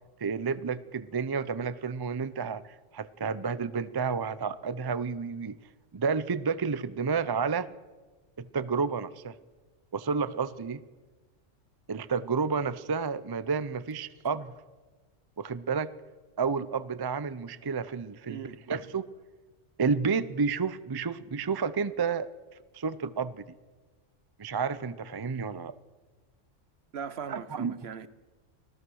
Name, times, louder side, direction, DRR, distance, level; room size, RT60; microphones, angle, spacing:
voice 1, 0.2-5.6 5.9-7.7 8.4-9.3 9.9-10.8 11.9-14.6 15.4-15.9 16.4-18.4 18.7-19.1 19.8-22.3 22.7-23.4 24.4-25.8 27.3-27.8, right 5 dB, 35° right, 0.4 m, -30 dB
voice 2, 18.3-18.6 26.9-28.1, right 7 dB, 60° right, 1.0 m, -39 dB
25.5 x 17.0 x 6.3 m
omnidirectional pair, 1.3 m